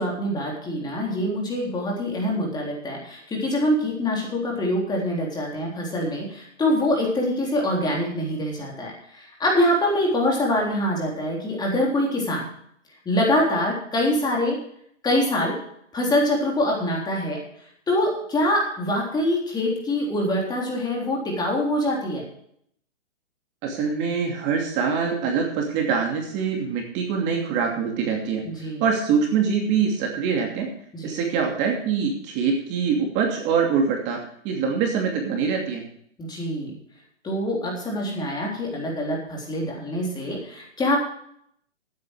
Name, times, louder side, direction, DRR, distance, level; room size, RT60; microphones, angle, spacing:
voice 1, 0.0-12.5 13.1-14.6 15.0-15.6 15.9-17.4 17.9-22.3 28.4-28.8 30.9-31.1 36.2-36.7 37.2-41.0, left 1 dB, 10° left, -1 dB, 3.6 m, -24 dB
voice 2, 23.6-30.7 31.0-34.2 34.4-35.8, right 6 dB, 30° right, 1 dB, 2.7 m, -24 dB
14.5 x 9.4 x 4.8 m, 0.67 s
hypercardioid pair, 150°, 36 cm